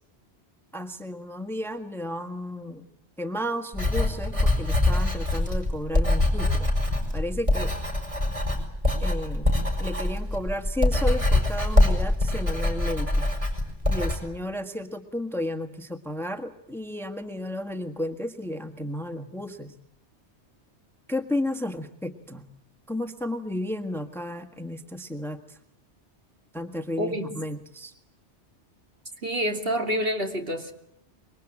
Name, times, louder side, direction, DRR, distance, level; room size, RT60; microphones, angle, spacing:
voice 1, 0.7-2.8 3.2-6.5 7.1-7.7 9.0-13.3 13.9-19.7 21.1-22.4 22.9-25.6 26.5-27.9, left 1 dB, ahead, 7 dB, 1.6 m, -33 dB
Writing, 3.7-14.2, left 2 dB, 30° right, 5.6 m, -24 dB
voice 2, 27.0-27.3 29.2-30.7, equal, 55° right, 4 dB, 3.2 m, -27 dB
26.0 x 23.0 x 8.9 m, 0.78 s
omnidirectional pair, 1.2 m